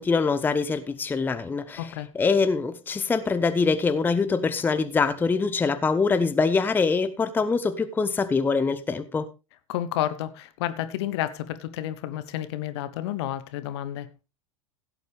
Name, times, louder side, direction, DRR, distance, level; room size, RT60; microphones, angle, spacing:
voice 1, 0.0-9.3, left 4 dB, 10° left, 0.7 m, -24 dB
voice 2, 1.8-2.1 9.7-14.1, left 12 dB, 55° left, 1.0 m, -30 dB
16.0 x 8.1 x 3.5 m
figure-of-eight pair, 85°, 17 cm